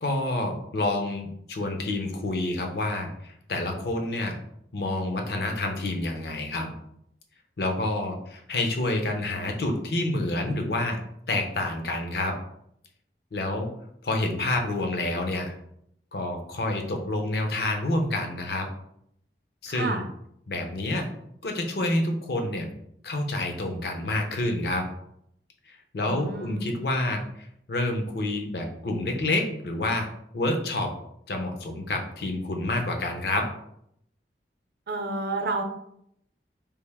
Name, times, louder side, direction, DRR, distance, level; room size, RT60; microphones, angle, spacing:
voice 1, 0.0-4.3 4.7-6.7 7.6-11.0 11.3-12.4 13.3-13.7 14.0-15.5 16.1-18.7 19.6-20.1 20.5-21.1 21.4-22.7 23.0-24.9 25.7-30.1 30.3-30.9 31.3-33.5, left 2 dB, 60° left, 3 dB, 0.6 m, -28 dB
voice 2, 26.0-26.6 34.9-35.6, right 3 dB, 60° right, 5 dB, 0.5 m, -30 dB
3.4 x 2.5 x 3.4 m, 0.73 s
head